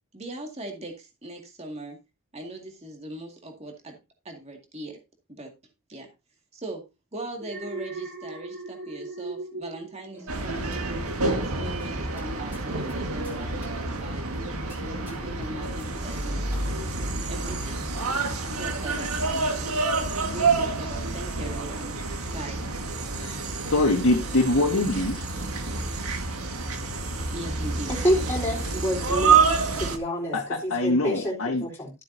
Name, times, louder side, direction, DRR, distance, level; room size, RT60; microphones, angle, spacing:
voice 1, 0.1-2.0 2.3-4.0 4.2-5.0 5.3-5.5 5.9-6.1 6.5-6.8 7.1-14.3 14.8-16.6 17.3-17.9 18.5-19.8 20.2-22.0 22.3-22.6 27.3-27.9, right 1 dB, 30° right, 2.2 m, -40 dB
Alarm, 7.4-10.7 11.1-11.4, right 3 dB, 50° right, 2.7 m, -38 dB
sound 1, 10.1-18.7, equal, 10° right, 3.4 m, -46 dB
sound 2, 10.3-30.0, right 4 dB, 80° right, 1.7 m, -28 dB
voice 2, 23.7-25.3 30.3-31.6, left 2 dB, 70° left, 1.6 m, -23 dB
voice 3, 27.9-29.4 29.7-30.4 30.6-31.3 31.6-31.9, equal, 10° left, 4.1 m, -27 dB
13.0 x 7.7 x 2.7 m
head